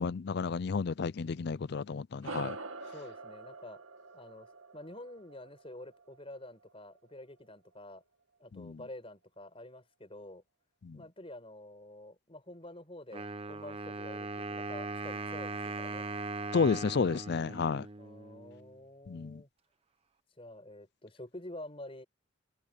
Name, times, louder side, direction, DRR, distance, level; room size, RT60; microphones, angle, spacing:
voice 1, 0.0-2.6 8.5-8.8 10.8-11.0 16.5-17.9 19.1-19.4, left 5 dB, 55° left, 0.4 m, -31 dB
sound 1, 2.2-7.0, right 3 dB, 90° right, 2.1 m, -46 dB
voice 2, 2.9-3.8 4.1-8.0 8.4-10.4 10.9-16.1 18.0-19.5 20.4-22.1, left 1 dB, 30° left, 5.1 m, -48 dB
Wind instrument woodwind instrument, 13.1-18.8, right 3 dB, 30° right, 0.9 m, -40 dB
head